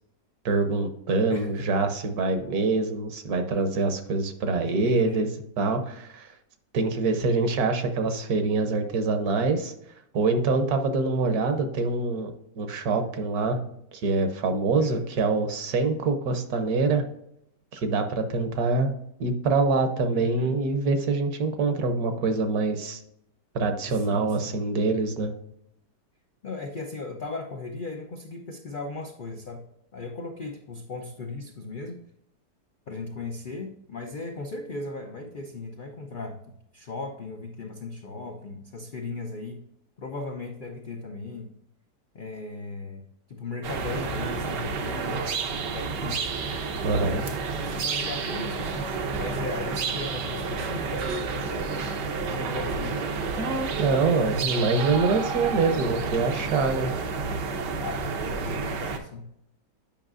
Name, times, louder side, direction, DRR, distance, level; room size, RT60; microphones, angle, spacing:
voice 1, 0.4-5.3 5.6-6.3 6.7-9.7 10.1-13.6 14.0-17.0 17.7-18.9 19.2-23.0 23.5-25.3 46.8-47.2 53.4-56.9 57.2-57.4, right 3 dB, 65° right, 7 dB, 1.3 m, -25 dB
voice 2, 1.3-1.7 4.5-5.2 14.8-15.1 20.1-20.6 23.9-24.5 26.4-29.6 29.9-32.0 32.9-36.4 36.7-39.6 40.0-41.5 42.1-43.0 43.3-46.3 46.9-47.3 47.6-48.9 49.2-51.9 52.2-53.4 57.8-59.3, left 3 dB, 75° left, 2 dB, 0.4 m, -37 dB
sound 1, 43.6-59.0, right 4 dB, 80° right, 1.5 m, -30 dB
8.9 x 5.5 x 2.5 m, 0.75 s
omnidirectional pair, 1.8 m